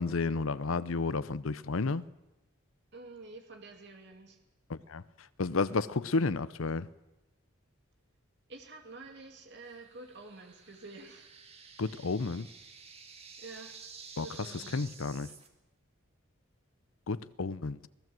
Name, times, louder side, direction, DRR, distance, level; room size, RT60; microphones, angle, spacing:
voice 1, 0.0-2.0 4.7-5.0 5.4-6.9 11.8-12.5 14.2-14.3 14.7-15.3 17.1-17.9, left 3 dB, 80° left, 0.7 m, -31 dB
voice 2, 2.9-4.4 8.5-11.3 13.4-13.8 14.2-14.8, right 3 dB, 55° right, 2.2 m, -48 dB
sound 1, 9.6-15.5, right 5 dB, 30° right, 2.0 m, -51 dB
24.5 x 17.0 x 7.7 m
head